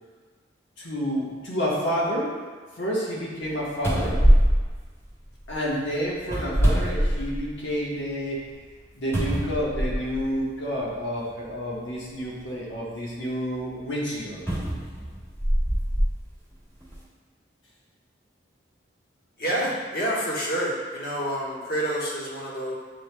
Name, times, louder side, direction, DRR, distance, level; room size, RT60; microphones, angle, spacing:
voice 1, 0.8-2.4 2.8-4.2 5.5-8.4 8.9-14.5, equal, 90° left, -4 dB, 1.1 m, -29 dB
sound 1, 3.4-3.5 3.8-5.5 6.2-7.6 8.1-8.2 9.1-10.2 11.2-11.3 14.5-16.1 16.8-16.9, equal, 15° left, 1.1 m, -23 dB
voice 2, 19.4-22.7, equal, 55° left, -5 dB, 1.1 m, -28 dB
7.5 x 3.0 x 2.2 m, 1.5 s
head